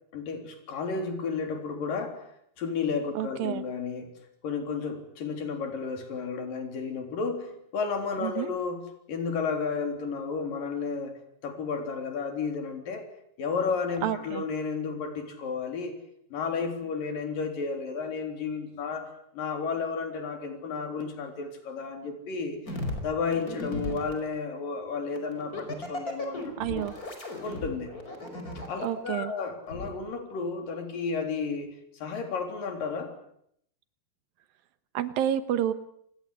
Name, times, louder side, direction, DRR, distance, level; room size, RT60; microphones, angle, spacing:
voice 1, 0.1-2.2 2.6-4.1 4.4-11.2 11.4-13.1 13.4-16.0 16.3-22.6 23.0-26.9 27.4-28.0 28.7-33.1, left 5 dB, 60° left, 5 dB, 5.2 m, -32 dB
voice 2, 3.2-3.6 8.2-8.5 14.0-14.4 26.6-26.9 28.8-29.3 34.9-35.7, right 11 dB, 70° right, 13 dB, 2.8 m, -29 dB
sound 1, 22.7-24.2 25.2-28.9 29.7-29.9, left 1 dB, 20° left, 5.2 m, -36 dB
28.5 x 20.5 x 8.3 m, 0.72 s
omnidirectional pair, 4.6 m